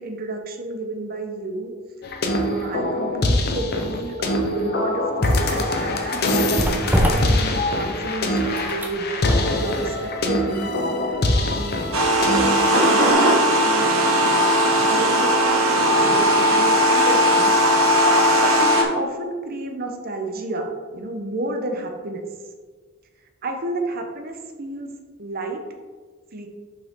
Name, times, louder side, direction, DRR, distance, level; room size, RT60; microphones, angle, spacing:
voice 1, 0.0-1.7 2.3-6.5 6.9-9.1 9.5-10.8 11.3-13.9 14.8-17.5 18.2-20.7 20.9-22.2 23.4-24.9 25.2-25.6 26.3-26.5, right 2 dB, 45° right, 3 dB, 0.9 m, -31 dB
sound 1, 2.0-13.1, left 1 dB, 50° left, 0.8 m, -23 dB
sound 2, 5.8-13.3 13.6-13.8, equal, 10° right, 0.7 m, -28 dB
sound 3, 11.9-18.8, equal, 85° right, 1.2 m, -18 dB
6.7 x 5.6 x 3.7 m, 1.5 s
head